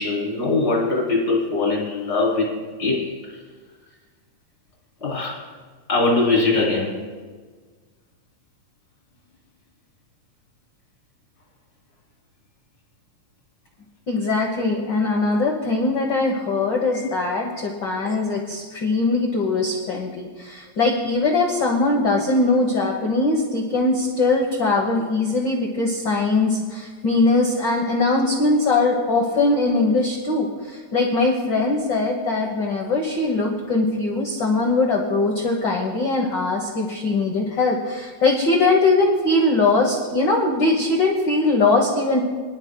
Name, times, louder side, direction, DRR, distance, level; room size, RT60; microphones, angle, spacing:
voice 1, 0.0-3.4 5.0-5.4 5.9-6.9 16.9-17.1, left 3 dB, 20° left, -2 dB, 2.8 m, -22 dB
voice 2, 14.1-42.2, left 3 dB, 80° left, 0 dB, 1.0 m, -21 dB
24.0 x 11.5 x 2.2 m, 1.5 s
omnidirectional pair, 3.7 m